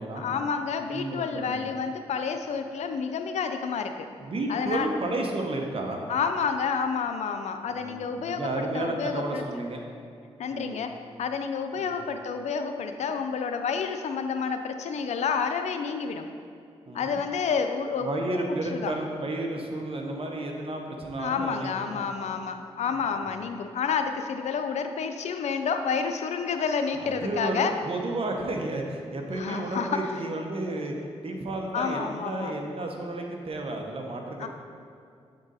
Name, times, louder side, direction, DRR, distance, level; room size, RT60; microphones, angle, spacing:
voice 1, 0.2-4.1 4.5-4.9 6.1-9.4 10.4-10.9 11.2-16.3 16.9-18.9 21.2-27.7 29.4-30.0 31.7-32.5 34.4-34.5, left 6 dB, 80° left, 7 dB, 0.4 m, -29 dB
voice 2, 0.9-1.7 4.2-6.0 7.7-9.8 10.5-10.8 11.8-11.9 16.9-17.2 18.0-22.0 23.0-23.2 26.9-31.0 31.2-34.5, right 2 dB, 55° right, 2 dB, 0.9 m, -32 dB
7.8 x 3.8 x 4.0 m, 2.4 s
cardioid pair, 55°, 11 cm